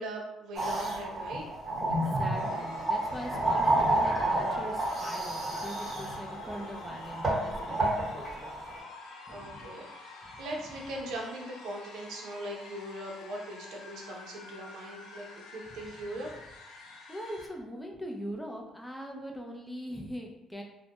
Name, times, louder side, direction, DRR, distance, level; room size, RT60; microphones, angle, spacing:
voice 1, 0.0-1.4 9.3-16.3, right 1 dB, 80° right, -1 dB, 0.6 m, -40 dB
sound 1, 0.6-8.8, right 1 dB, 20° right, 1.0 m, -30 dB
voice 2, 2.0-8.5 9.3-9.6 10.2-10.4 10.7-10.8 15.7-15.8 16.8-20.6, equal, 5° left, 0 dB, 0.4 m, -42 dB
sound 2, 2.3-17.5, left 3 dB, 85° left, 0.5 m, -48 dB
2.1 x 2.1 x 2.8 m, 0.90 s
cardioid pair, 100°, 0 cm